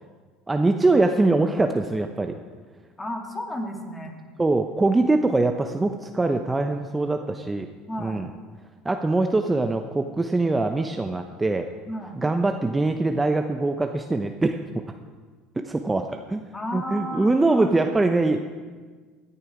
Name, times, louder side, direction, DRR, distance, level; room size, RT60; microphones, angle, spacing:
voice 1, 0.5-2.4 4.4-7.7 8.0-8.3 8.8-11.7 12.2-14.8 15.6-16.4 16.7-18.4, right 2 dB, 15° right, 6 dB, 0.8 m, -23 dB
voice 2, 3.0-4.1 7.9-8.2 11.9-12.2 16.5-17.8, left 1 dB, 20° left, 2 dB, 2.7 m, -33 dB
17.0 x 10.0 x 5.0 m, 1.5 s
hypercardioid pair, 75°, 0 cm